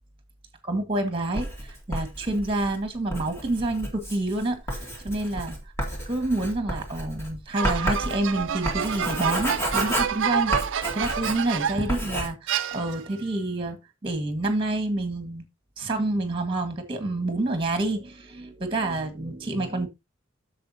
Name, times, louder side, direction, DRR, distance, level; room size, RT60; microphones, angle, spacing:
voice 1, 0.6-1.5 1.9-5.6 6.1-10.7 10.9-13.8 14.0-15.4 15.8-19.9, right 2 dB, 25° right, 1.8 m, -28 dB
Writing, 1.3-11.6 11.9-12.3, equal, 10° left, 2.0 m, -31 dB
sound 1, 7.6-12.0 12.5-13.2, right 8 dB, 65° right, 0.5 m, -28 dB
10.0 x 6.9 x 2.8 m
head